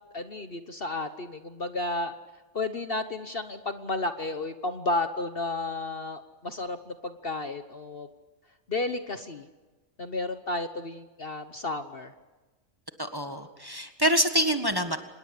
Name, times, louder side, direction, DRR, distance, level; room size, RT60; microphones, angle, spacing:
voice 1, 0.1-2.1 2.5-8.1 8.7-9.5 10.0-12.1, left 2 dB, 45° left, 9 dB, 1.3 m, -32 dB
voice 2, 13.0-15.0, equal, 15° right, 7 dB, 1.6 m, -26 dB
26.0 x 20.5 x 8.4 m, 1.2 s
omnidirectional pair, 1.5 m